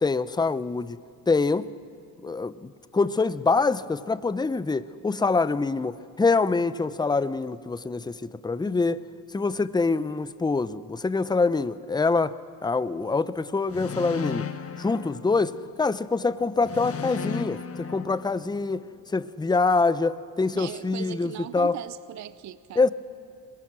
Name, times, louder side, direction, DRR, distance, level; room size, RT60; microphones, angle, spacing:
voice 1, 0.0-1.0 1.3-1.7 2.2-9.0 9.3-12.3 12.6-14.5 14.8-17.6 17.9-18.9 19.1-21.8 22.8-22.9, left 3 dB, 10° left, 0.7 m, -25 dB
sound 1, 13.7-15.9 16.6-18.8, left 6 dB, 30° left, 1.4 m, -35 dB
voice 2, 20.5-22.9, right 12 dB, 35° right, 0.7 m, -39 dB
25.5 x 21.5 x 6.3 m
hypercardioid pair, 70°, 48 cm